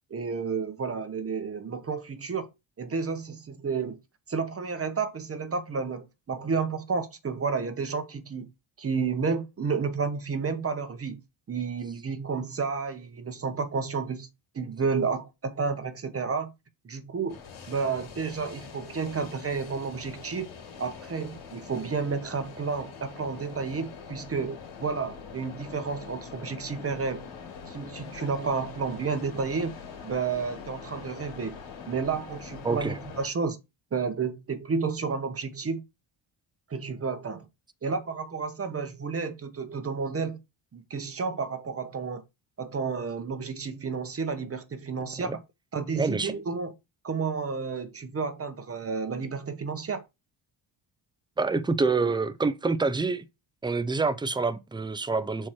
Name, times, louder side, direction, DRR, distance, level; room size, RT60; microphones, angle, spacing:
voice 1, 0.1-2.5 2.8-4.0 4.3-8.5 8.8-11.2 11.5-14.3 14.5-16.5 16.8-17.4 17.7-20.5 20.8-27.3 27.7-29.8 30.0-31.6 31.9-33.6 33.9-35.8 36.7-37.5 37.8-40.4 40.7-42.2 42.6-45.3 45.7-46.7 47.0-50.0, right 5 dB, 30° right, 0.8 m, -31 dB
sound 1, 17.3-33.3, left 6 dB, 80° left, 2.8 m, -44 dB
voice 2, 32.6-33.0 45.2-45.4 46.0-46.3 51.4-53.2 53.6-55.5, right 4 dB, 10° right, 0.4 m, -27 dB
6.2 x 4.4 x 4.5 m
cardioid pair, 130°, 49 cm